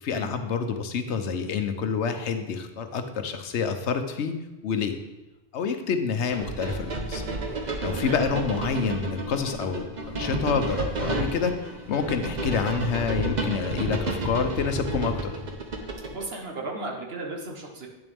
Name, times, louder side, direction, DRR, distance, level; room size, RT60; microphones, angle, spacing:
voice 1, 0.0-4.3 4.6-5.0 5.5-7.2 7.8-11.6 11.9-15.3, left 6 dB, 85° left, 7 dB, 1.1 m, -28 dB
sound 1, 6.3-16.3, right 1 dB, 45° right, 1.0 m, -31 dB
voice 2, 16.1-17.9, right 2 dB, 65° right, 1 dB, 1.5 m, -35 dB
9.2 x 7.1 x 3.5 m, 1.1 s
omnidirectional pair, 1.1 m